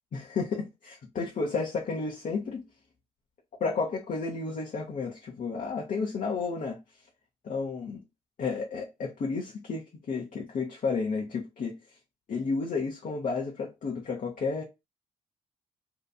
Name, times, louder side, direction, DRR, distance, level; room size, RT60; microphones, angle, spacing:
voice 1, 0.1-2.6 3.6-6.8 7.4-8.0 8.4-11.8 12.3-14.6, left 4 dB, 50° left, 0.8 m, -32 dB
2.8 x 2.5 x 2.3 m
hypercardioid pair, 45°, 17 cm